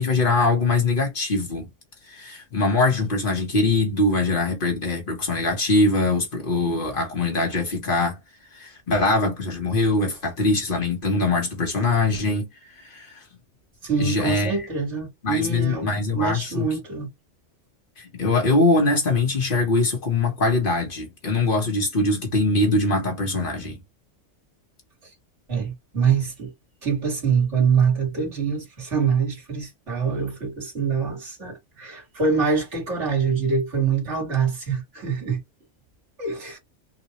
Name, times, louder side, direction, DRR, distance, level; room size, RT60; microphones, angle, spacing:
voice 1, 0.0-1.7 2.1-8.2 8.5-12.5 12.8-13.2 14.0-14.5 15.2-16.7 18.0-23.8, left 2 dB, 50° left, 1.3 m, -22 dB
voice 2, 13.8-17.1 25.0-25.1 25.5-26.5 26.8-35.4 36.2-36.6, right 6 dB, 75° right, 2.0 m, -24 dB
3.9 x 2.3 x 2.9 m
omnidirectional pair, 1.2 m